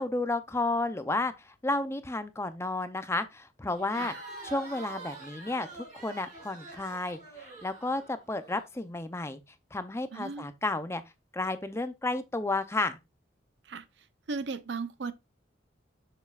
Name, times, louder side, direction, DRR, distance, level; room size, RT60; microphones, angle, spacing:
voice 1, 0.0-4.1 4.4-7.2 7.6-9.4 9.7-11.0 11.3-13.0, left 2 dB, 15° left, 0.5 m, -32 dB
Crowd, 3.7-8.6, right 3 dB, 45° right, 3.9 m, -45 dB
voice 2, 10.1-10.5 13.6-13.8 14.3-15.1, right 4 dB, 65° right, 0.6 m, -36 dB
7.1 x 6.6 x 2.4 m
head